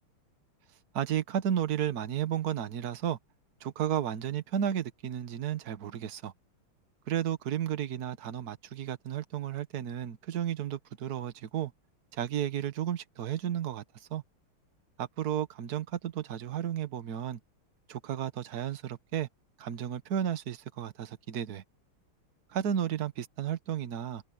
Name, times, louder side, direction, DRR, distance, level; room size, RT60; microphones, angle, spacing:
voice 1, 0.9-3.2 3.6-6.3 7.1-11.7 12.1-14.2 15.0-17.4 17.9-19.3 19.6-21.6 22.5-24.2, right 10 dB, 50° right, 1.5 m, -33 dB
omnidirectional pair, 2.4 m